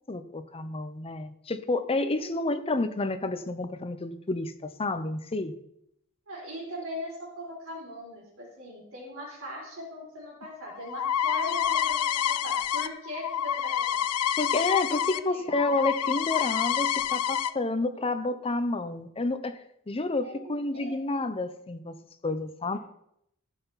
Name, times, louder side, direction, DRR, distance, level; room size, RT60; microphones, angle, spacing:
voice 1, 0.1-5.5 14.4-19.5 19.9-21.9 22.2-22.8, left 2 dB, 25° left, 9 dB, 0.7 m, -29 dB
voice 2, 2.2-2.6 6.3-14.0 15.1-15.5 16.4-16.5 17.9-18.0 20.2-21.0, left 1 dB, 65° right, -3 dB, 3.7 m, -40 dB
sound 1, 10.4-15.2 15.5-17.5, left 9 dB, 80° left, 0.4 m, -28 dB
14.5 x 5.9 x 4.1 m, 0.76 s
head